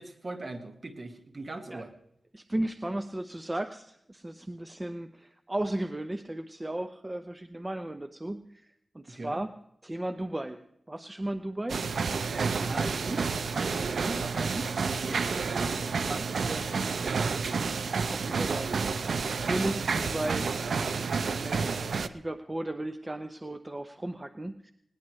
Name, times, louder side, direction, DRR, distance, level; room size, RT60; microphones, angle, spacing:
voice 1, 0.0-1.9 9.1-9.4 12.6-17.4, right 2 dB, 40° right, 6 dB, 1.8 m, -40 dB
voice 2, 2.3-9.5 9.8-10.6 10.9-11.8 18.1-20.5 21.2-24.7, right 1 dB, 20° right, 9 dB, 0.7 m, -35 dB
sound 1, 11.7-22.1, right 5 dB, 90° right, 0.6 m, -30 dB
20.0 x 18.5 x 3.2 m, 0.73 s
wide cardioid pair, 95°, 0 cm